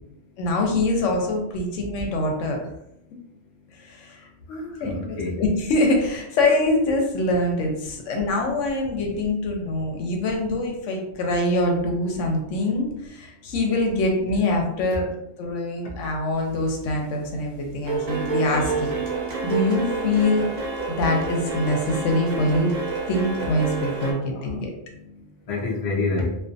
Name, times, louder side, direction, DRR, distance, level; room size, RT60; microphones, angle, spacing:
voice 1, 0.4-2.7 3.7-15.1 15.4-18.9 19.4-20.4 20.9-22.7 23.0-24.7, left 2 dB, 85° left, 2 dB, 0.9 m, -24 dB
voice 2, 4.5-5.4 24.1-26.4, left 3 dB, 45° left, -2 dB, 0.4 m, -29 dB
sound 1, 16.5-16.9 17.2-24.1, right 4 dB, 55° right, 0.4 m, -29 dB
2.4 x 2.1 x 2.5 m, 0.81 s
omnidirectional pair, 1.3 m